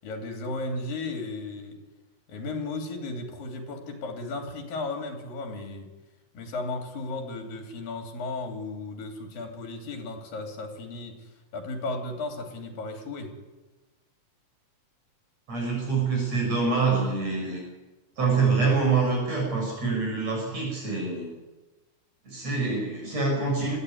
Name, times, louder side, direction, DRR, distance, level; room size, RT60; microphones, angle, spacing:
voice 1, 0.0-1.8 2.3-5.9 6.3-13.3, left 2 dB, 85° left, 3 dB, 4.9 m, -35 dB
voice 2, 15.5-17.6 18.2-21.3 22.3-23.8, right 4 dB, 50° right, -1 dB, 8.0 m, -25 dB
22.0 x 14.5 x 9.5 m, 1.1 s
omnidirectional pair, 3.9 m